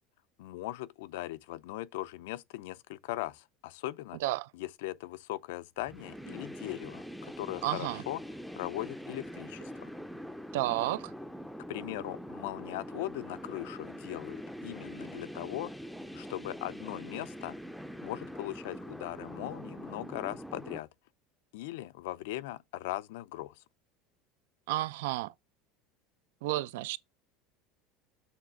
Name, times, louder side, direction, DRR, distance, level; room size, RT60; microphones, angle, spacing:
voice 1, 0.4-4.2 4.5-8.2 8.5-9.9 11.7-15.7 16.1-17.6 18.0-20.9 21.5-23.6, left 16 dB, 80° left, 0.5 m, -39 dB
sound 1, 5.8-20.8, equal, ahead, 0.5 m, -44 dB
voice 2, 7.6-8.0 10.5-11.1 24.7-25.3 26.4-27.0, right 16 dB, 80° right, 0.4 m, -31 dB
7.2 x 3.3 x 6.2 m
cardioid pair, 160°, 0 cm